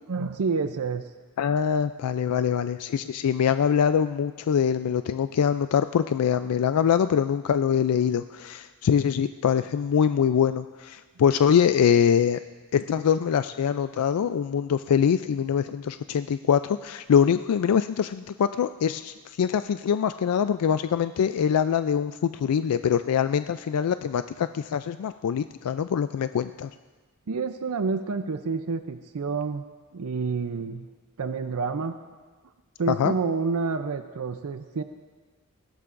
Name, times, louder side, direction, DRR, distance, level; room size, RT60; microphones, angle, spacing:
voice 1, 0.1-1.0 27.3-29.6 29.9-30.8 31.2-31.9 32.8-34.8, right 4 dB, 75° right, 8 dB, 0.5 m, -28 dB
voice 2, 1.4-12.4 12.7-26.7 32.9-33.1, left 8 dB, 90° left, 11 dB, 0.3 m, -24 dB
20.0 x 16.5 x 2.5 m, 1.4 s
head